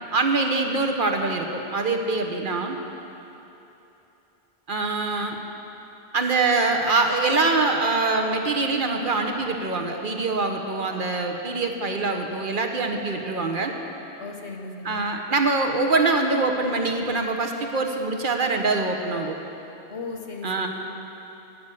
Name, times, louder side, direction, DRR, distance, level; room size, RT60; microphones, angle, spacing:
voice 1, 0.1-2.8 4.7-5.4 6.1-13.7 14.8-19.4 20.4-20.7, right 3 dB, 50° right, 3 dB, 1.0 m, -24 dB
voice 2, 14.2-15.1 19.9-20.7, left 4 dB, 80° left, 3 dB, 1.3 m, -36 dB
11.5 x 6.6 x 8.4 m, 3.0 s
omnidirectional pair, 1.1 m